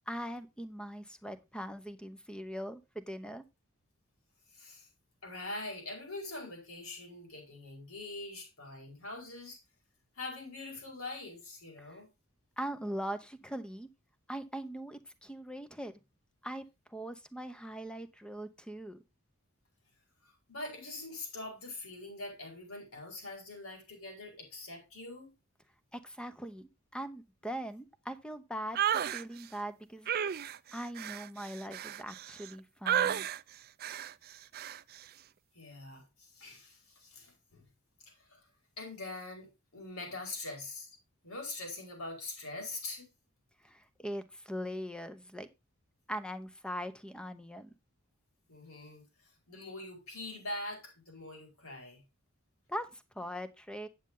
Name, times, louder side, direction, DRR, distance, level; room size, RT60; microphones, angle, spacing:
voice 1, 0.1-3.4 11.8-12.0 12.6-13.9 14.3-16.0 16.4-19.0 25.9-30.1 30.7-33.3 43.6-45.5 46.1-47.7 52.7-53.9, equal, 5° left, 0.8 m, -41 dB
voice 2, 4.5-4.9 5.2-9.6 10.1-12.1 20.2-25.3 35.5-37.7 38.1-38.4 38.8-40.9 41.2-43.1 48.5-52.0, left 2 dB, 85° left, 5.0 m, -43 dB
sound 1, 28.7-29.2 30.1-32.5 32.9-33.4 33.8-34.1 34.5-34.8, right 10 dB, 45° right, 0.4 m, -32 dB
9.0 x 7.6 x 3.9 m
head